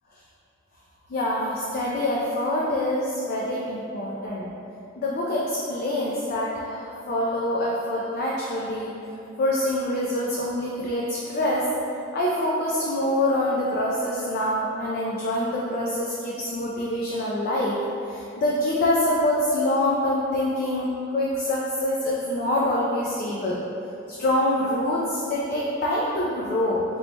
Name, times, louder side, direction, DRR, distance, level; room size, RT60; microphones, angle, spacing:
voice 1, 1.1-4.5 5.0-8.9 9.4-11.7 12.1-23.6 24.1-26.8, left 1 dB, 45° left, -5 dB, 0.3 m, -25 dB
3.1 x 2.1 x 4.0 m, 2.7 s
head